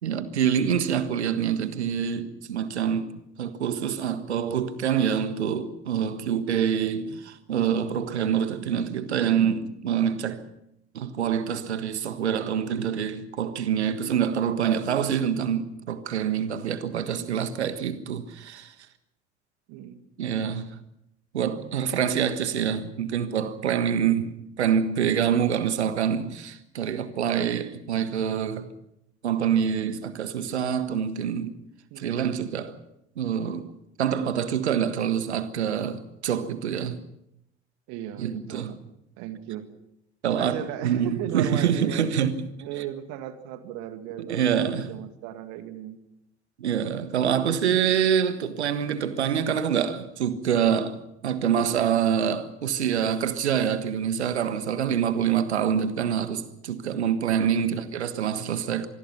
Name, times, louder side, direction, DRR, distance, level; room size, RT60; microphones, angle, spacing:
voice 1, 0.0-10.4 10.9-18.7 20.2-20.8 21.3-28.7 29.2-31.5 32.0-32.8 33.2-33.7 34.0-37.0 38.2-38.7 40.2-42.5 44.3-44.9 46.6-58.9, right 8 dB, 75° right, 1.6 m, -26 dB
voice 2, 6.8-7.2 17.0-17.4 19.7-20.0 21.5-21.7 23.9-24.2 31.9-32.2 37.9-38.8 39.2-39.7 40.2-42.3 42.6-46.0 57.5-57.6, right 11 dB, 60° right, 2.3 m, -38 dB
26.0 x 20.0 x 5.8 m
figure-of-eight pair, 60°, 33 cm